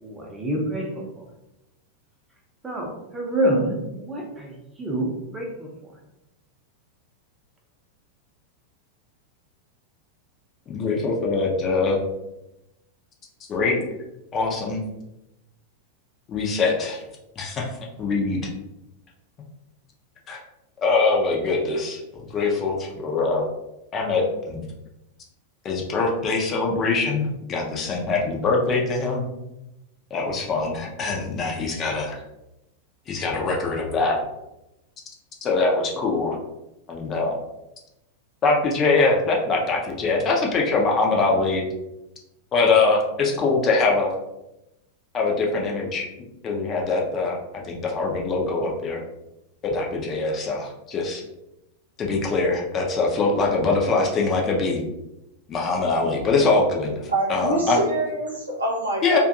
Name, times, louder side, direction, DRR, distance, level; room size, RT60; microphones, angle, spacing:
voice 1, 0.0-0.9 2.6-2.9 3.1-4.5 4.8-5.7, right 1 dB, 10° right, -1 dB, 0.7 m, -26 dB
voice 2, 10.7-12.0 13.5-13.8 14.3-14.8 16.3-17.0 17.4-18.5 20.3-20.4 20.8-22.0 22.3-23.5 23.9-24.6 25.6-29.2 30.1-32.2 33.1-34.2 35.4-36.4 36.9-37.4 38.4-41.6 42.5-44.1 45.1-46.1 46.4-49.0 49.6-51.2 52.0-54.8 55.5-57.8 59.0-59.2, left 3 dB, 30° left, -1 dB, 0.5 m, -23 dB
voice 3, 57.1-59.2, right 2 dB, 75° right, -2 dB, 0.7 m, -25 dB
2.6 x 2.4 x 2.5 m, 0.91 s
figure-of-eight pair, 90°, 0 cm